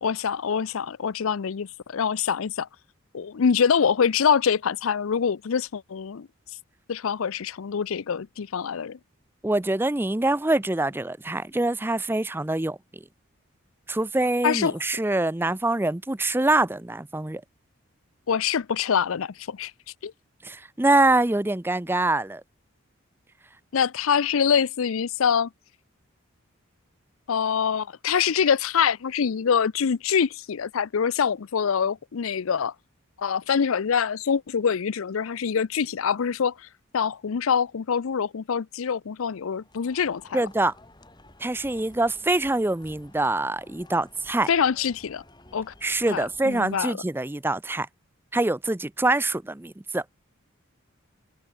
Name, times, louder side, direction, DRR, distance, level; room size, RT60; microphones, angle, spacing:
voice 1, 0.0-2.7 3.1-6.3 6.9-9.0 14.4-14.7 18.3-19.7 20.0-20.1 23.7-25.5 27.3-32.7 33.2-36.5 36.9-40.4 44.5-45.2 45.5-45.7 46.1-46.9, left 7 dB, 75° left, 0.5 m, -25 dB
voice 2, 9.4-12.8 13.9-17.4 20.4-22.4 40.3-40.7 41.4-44.5 45.8-47.9 48.3-50.0, right 2 dB, 10° right, 0.5 m, -24 dB
sound 1, 39.4-46.8, left 1 dB, 20° left, 7.3 m, -53 dB
head